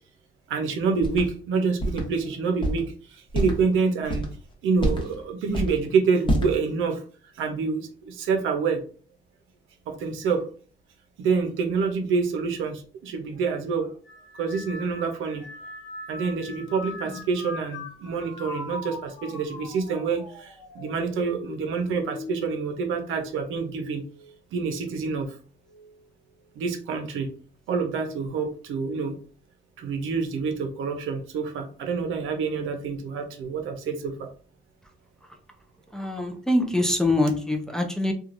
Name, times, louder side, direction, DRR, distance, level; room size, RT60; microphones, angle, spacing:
voice 1, 0.5-4.3 4.6-7.0 7.4-8.8 9.9-10.4 11.2-13.9 14.4-15.5 16.1-24.0 24.5-25.4 26.6-27.3 27.7-29.2 29.8-34.3, right 5 dB, 85° right, 5 dB, 0.6 m, -27 dB
sound 1, 1.0-1.3 1.8-2.0 2.6-2.8 3.3-3.6 4.0-4.3 4.8-5.1 5.5-5.8 6.3-6.5, equal, 25° left, 1.0 m, -25 dB
sound 2, 14.0-23.7 24.1-24.7 25.7-26.0, left 3 dB, 75° left, 0.8 m, -41 dB
voice 2, 35.9-38.1, left 1 dB, 5° left, 3 dB, 0.5 m, -24 dB
3.0 x 2.3 x 2.5 m, 0.42 s
cardioid pair, 90°, 20 cm